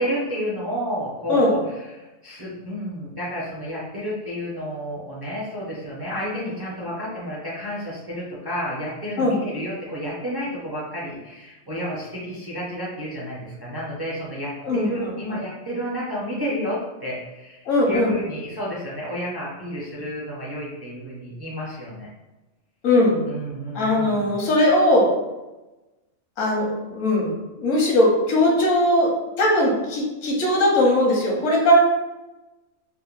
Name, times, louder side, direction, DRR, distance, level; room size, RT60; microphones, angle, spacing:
voice 1, 0.0-22.1 23.3-24.2, equal, 30° right, -7 dB, 0.4 m, -31 dB
voice 2, 14.6-15.4 17.7-18.1 22.8-23.2 23.7-25.1 26.4-29.1 29.4-31.8, left 1 dB, 85° left, -1 dB, 1.1 m, -19 dB
3.5 x 2.0 x 2.3 m, 1.1 s
omnidirectional pair, 1.3 m